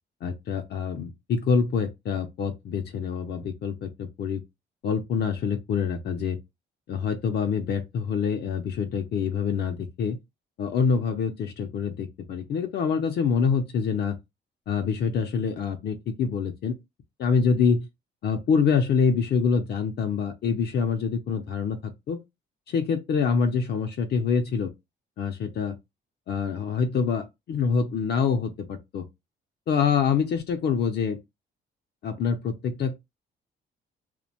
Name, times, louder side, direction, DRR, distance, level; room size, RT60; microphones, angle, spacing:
voice 1, 0.2-4.4 4.8-6.4 6.9-10.2 10.6-14.2 14.7-16.7 17.2-17.9 18.2-22.2 22.7-24.7 25.2-25.8 26.3-29.1 29.7-31.2 32.0-32.9, left 6 dB, 55° left, 0.4 m, -26 dB
2.5 x 2.1 x 2.7 m
cardioid pair, 90°, 20 cm